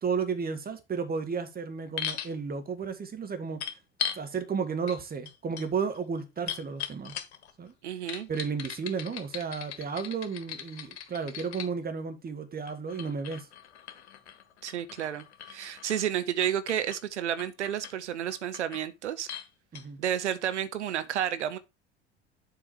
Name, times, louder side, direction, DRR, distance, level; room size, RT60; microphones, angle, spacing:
voice 1, 0.0-3.6 4.1-7.1 7.6-7.7 8.3-13.5 19.7-20.0, right 5 dB, 25° right, 1.7 m, -33 dB
sound 1, 2.0-2.3 3.6-4.2 4.9-5.0 5.3-7.5 8.1-11.7 12.7-16.1 16.4-17.0 17.4-17.9 18.3-18.9 19.3-19.5 19.8-19.9, left 9 dB, 70° left, 1.3 m, -39 dB
voice 2, 7.8-8.3 14.6-19.3 20.0-21.6, right 10 dB, 80° right, 0.8 m, -31 dB
7.5 x 4.6 x 4.7 m
hypercardioid pair, 75°, 34 cm